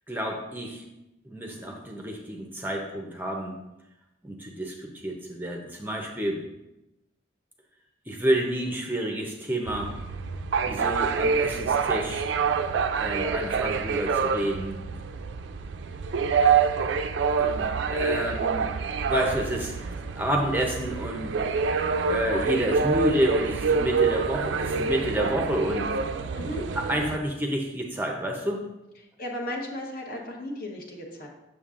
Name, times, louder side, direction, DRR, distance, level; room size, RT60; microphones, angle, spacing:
voice 1, 0.1-0.9 1.2-3.6 4.2-6.4 8.1-9.9 10.7-12.2 13.0-14.8 17.4-18.7 19.1-21.3 22.0-25.9 26.7-28.6, right 1 dB, 10° right, 1 dB, 0.6 m, -29 dB
sound 1, 9.7-27.2, right 5 dB, 80° right, 0.4 m, -27 dB
voice 2, 26.3-26.7 29.2-31.3, left 1 dB, 50° left, 0 dB, 1.0 m, -35 dB
7.0 x 6.6 x 2.5 m, 0.95 s
head